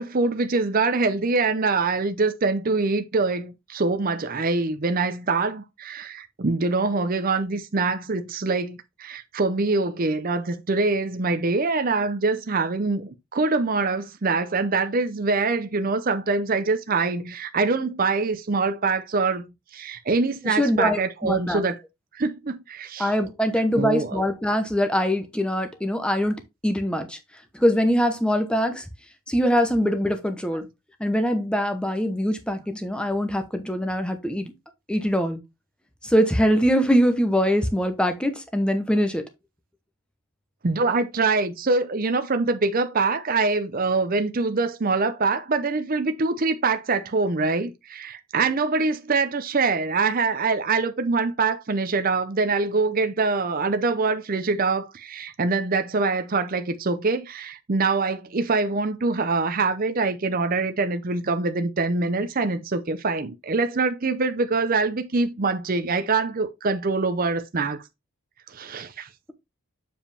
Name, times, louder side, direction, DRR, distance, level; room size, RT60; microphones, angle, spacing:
voice 1, 0.0-21.8 22.1-23.1 23.8-24.2 40.6-67.8 68.5-69.1, right 3 dB, 40° right, 0.6 m, -24 dB
voice 2, 20.4-21.6 23.0-27.2 27.5-28.9 29.3-30.7 31.0-34.5 34.9-35.4 36.0-39.2, equal, 5° left, 0.9 m, -23 dB
7.3 x 4.9 x 3.4 m
head